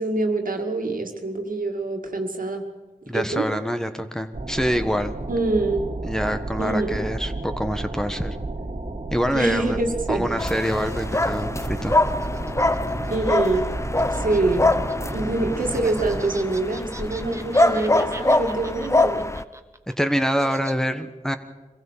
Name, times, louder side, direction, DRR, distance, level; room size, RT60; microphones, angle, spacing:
voice 1, 0.0-2.6 3.1-3.5 5.3-5.8 6.6-7.0 9.3-10.3 13.0-13.7 14.1-14.7 15.1-19.3, right 2 dB, 80° right, 3 dB, 2.1 m, -25 dB
voice 2, 3.1-5.2 6.0-8.4 9.1-9.8 10.1-12.0 20.0-21.4, equal, 5° left, 7 dB, 1.3 m, -25 dB
sound 1, 4.3-16.2, right 2 dB, 60° right, 2.2 m, -32 dB
sound 2, 9.7-15.1 15.5-20.7, right 1 dB, 20° right, 1.5 m, -42 dB
sound 3, 10.4-19.4, left 2 dB, 20° left, 0.7 m, -24 dB
23.5 x 15.5 x 7.4 m, 1.2 s
cardioid pair, 40°, 14 cm